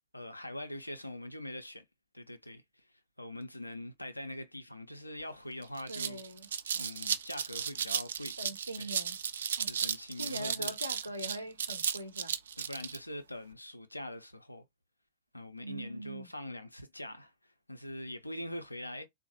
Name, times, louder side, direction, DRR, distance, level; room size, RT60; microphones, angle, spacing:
voice 1, 0.1-1.8 2.1-2.6 3.2-6.2 6.7-8.3 8.8-8.9 9.7-10.7 12.6-14.6 15.3-17.3 17.7-19.1, left 1 dB, 85° left, 0.5 m, -43 dB
sound 1, 5.2-5.3 5.6-13.0, right 7 dB, 65° right, 0.3 m, -35 dB
voice 2, 5.9-6.5 8.4-9.2 9.6-9.7 10.2-12.4 15.6-16.3, right 1 dB, 90° right, 0.7 m, -42 dB
3.8 x 2.0 x 2.8 m
figure-of-eight pair, 90°, 0 cm